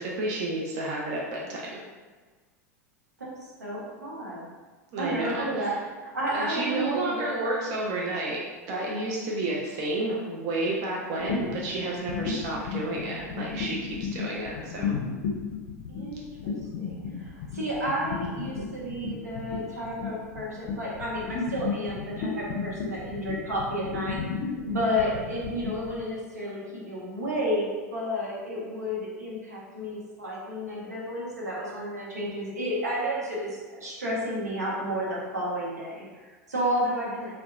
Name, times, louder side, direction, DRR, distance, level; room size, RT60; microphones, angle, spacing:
voice 1, 0.0-1.8 4.9-5.7 6.3-14.9, right 2 dB, 45° right, -3 dB, 0.4 m, -31 dB
voice 2, 3.6-4.4 5.0-7.8 15.9-37.3, equal, 85° right, -5 dB, 0.7 m, -31 dB
sound 1, 11.2-26.0, left 5 dB, 50° left, 0.4 m, -33 dB
2.6 x 2.1 x 2.3 m, 1.4 s
figure-of-eight pair, 90°, 9 cm